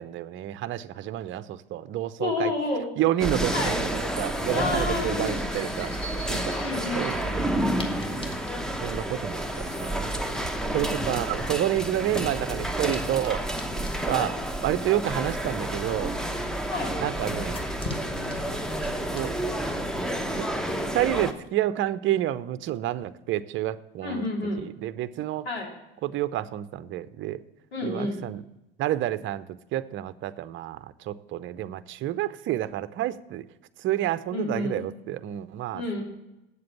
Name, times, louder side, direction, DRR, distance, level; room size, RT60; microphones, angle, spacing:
voice 1, 0.0-2.5 3.0-7.3 8.0-8.4 8.8-10.4 10.7-13.5 14.0-14.3 14.6-16.1 17.0-17.6 19.1-19.3 20.3-20.5 20.9-24.3 24.6-25.5 26.0-27.4 27.8-28.4 28.8-29.4 29.7-33.4 33.8-35.8, right 13 dB, 40° right, 13 dB, 0.6 m, -29 dB
voice 2, 2.2-2.9 3.5-3.8 4.5-5.4 6.5-7.1 14.1-14.3 16.7-16.9 24.0-24.6 25.4-25.7 27.7-28.2 34.3-34.8 35.7-36.0, left 2 dB, 90° left, -1 dB, 2.7 m, -29 dB
sound 1, 3.2-21.3, right 1 dB, ahead, 0.9 m, -30 dB
sound 2, 3.7-20.5, left 1 dB, 15° left, 1.5 m, -43 dB
8.2 x 7.7 x 6.9 m, 0.92 s
hypercardioid pair, 80°, 31 cm